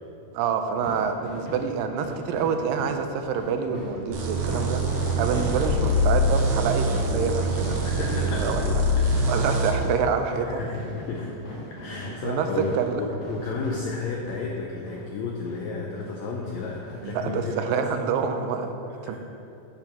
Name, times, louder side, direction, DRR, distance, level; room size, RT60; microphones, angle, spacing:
voice 1, 0.3-4.8 5.2-8.8 9.3-10.6 12.2-12.5 12.7-13.0 17.0-18.7 19.0-19.2, right 6 dB, 90° right, 7 dB, 2.3 m, -27 dB
sound 1, 0.7-14.6 14.9-15.0 15.5-15.6 16.0-16.1 16.4-17.4 17.8-17.9 18.1-18.2, equal, 50° left, 2.7 m, -38 dB
sound 2, 4.1-9.8, equal, 70° right, 2.0 m, -24 dB
voice 2, 7.8-9.7 10.3-11.4 11.7-18.0 19.0-19.2, left 4 dB, 85° left, -1 dB, 1.6 m, -33 dB
8.3 x 4.5 x 5.5 m, 2.8 s
omnidirectional pair, 3.9 m